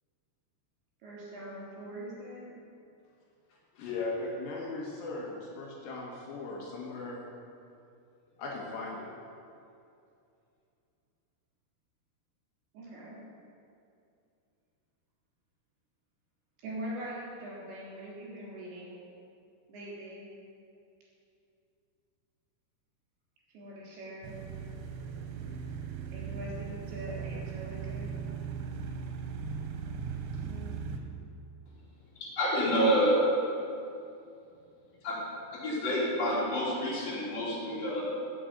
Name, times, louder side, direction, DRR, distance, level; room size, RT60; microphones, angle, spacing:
voice 1, 1.0-2.6 12.7-13.2 16.6-19.0 19.7-20.3 23.5-24.3 26.1-28.1 30.3-30.8, right 1 dB, 55° right, -6 dB, 5.2 m, -42 dB
voice 2, 3.7-7.2 8.4-9.1, left 3 dB, 65° left, -2 dB, 3.2 m, -38 dB
sound 1, 24.2-31.0, right 6 dB, 85° right, 3.4 m, -38 dB
voice 3, 32.2-33.3 35.0-35.2 35.5-38.0, equal, 35° left, -8 dB, 3.7 m, -28 dB
14.5 x 7.7 x 5.2 m, 2.6 s
omnidirectional pair, 5.9 m